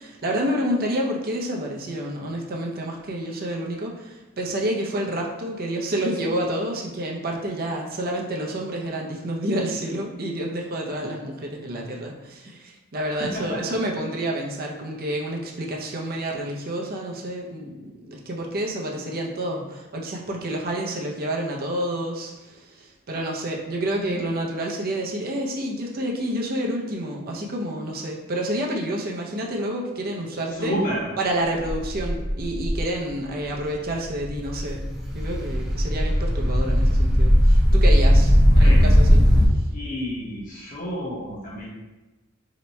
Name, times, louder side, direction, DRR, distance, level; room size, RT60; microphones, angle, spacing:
voice 1, 0.0-30.7 31.2-39.2, right 1 dB, 45° right, -1 dB, 0.6 m, -29 dB
voice 2, 13.2-13.8 23.9-24.2 30.5-31.1 38.5-38.9 39.7-41.7, equal, 40° left, -5 dB, 1.0 m, -30 dB
sound 1, 31.6-32.8 33.5-33.6 33.9-39.5, equal, ahead, 0.6 m, -18 dB
2.8 x 2.2 x 4.1 m, 1.1 s
head